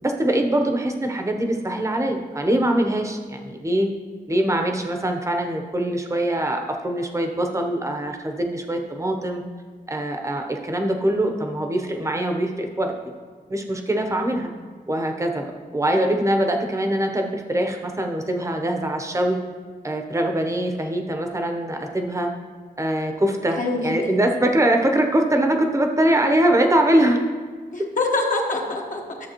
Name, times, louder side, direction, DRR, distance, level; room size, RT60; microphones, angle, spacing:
voice 1, 0.0-3.9 4.3-9.4 9.9-12.9 13.5-14.5 14.9-19.4 19.8-22.3 22.8-27.2, right 1 dB, 20° right, 3 dB, 0.8 m, -23 dB
voice 2, 23.6-24.2 27.7-29.3, left 2 dB, 55° left, 0 dB, 1.2 m, -25 dB
12.5 x 7.1 x 3.0 m, 1.5 s
wide cardioid pair, 160°, 16 cm